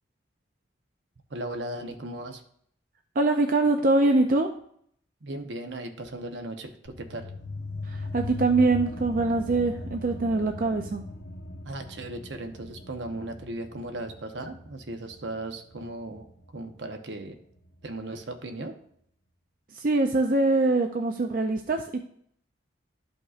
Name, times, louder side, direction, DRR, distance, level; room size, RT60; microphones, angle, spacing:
voice 1, 1.3-2.4 5.2-7.3 11.6-16.3 16.5-17.4 17.8-18.8, right 1 dB, 70° right, 5 dB, 0.9 m, -37 dB
voice 2, 3.2-4.5 7.8-11.0 19.7-22.0, right 2 dB, 45° right, 4 dB, 0.5 m, -23 dB
sound 1, 6.8-17.9, left 2 dB, 70° left, 1.0 m, -40 dB
12.5 x 5.2 x 2.5 m, 0.66 s
head